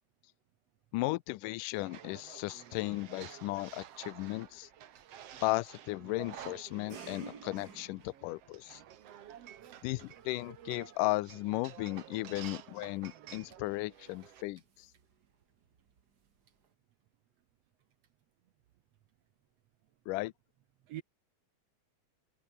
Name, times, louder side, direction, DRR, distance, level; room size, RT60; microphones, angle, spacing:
voice 1, 0.9-4.7 5.4-8.8 9.8-14.6 20.1-20.3, left 21 dB, 80° left, 2.0 m, -35 dB
sound 1, 1.7-14.4, right 10 dB, 55° right, 2.0 m, -51 dB
sound 2, 2.1-16.7, right 6 dB, 35° right, 1.7 m, -59 dB
voice 2, 10.1-10.5 20.8-21.0, right 13 dB, 75° right, 1.5 m, -47 dB
omnidirectional pair, 4.1 m